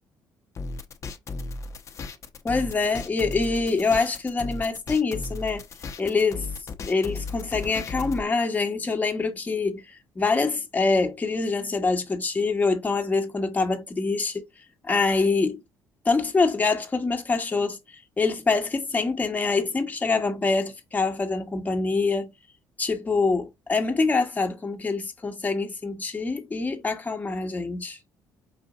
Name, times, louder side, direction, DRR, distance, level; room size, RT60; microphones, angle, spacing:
sound 1, 0.6-8.2, left 3 dB, 40° left, 0.8 m, -35 dB
voice 1, 2.4-5.6 6.0-6.5 6.9-14.4 14.8-15.6 16.0-22.3 22.8-28.0, left 4 dB, 20° left, 1.2 m, -25 dB
5.1 x 2.7 x 3.8 m
cardioid pair, 90°, 8 cm